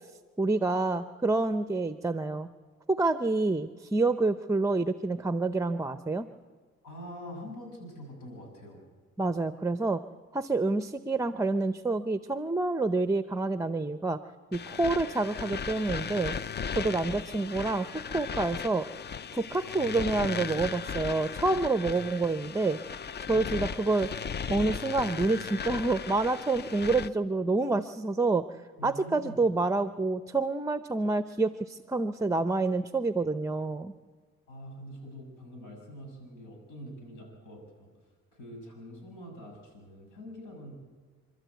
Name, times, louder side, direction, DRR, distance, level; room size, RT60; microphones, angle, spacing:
voice 1, 0.4-2.5 2.9-6.3 9.2-10.0 10.3-14.2 14.5-16.4 16.7-17.9 18.1-18.9 19.3-22.8 23.3-24.1 24.5-28.5 28.8-33.9, right 3 dB, 10° right, 11 dB, 0.6 m, -28 dB
voice 2, 6.8-8.9 21.8-21.9 28.8-29.4 34.5-37.9 38.3-40.7, equal, 85° left, 2 dB, 6.7 m, -45 dB
sound 1, 14.5-27.1, left 6 dB, 35° left, 0.5 m, -37 dB
28.5 x 12.5 x 8.1 m, 1.5 s
cardioid pair, 90°, 30 cm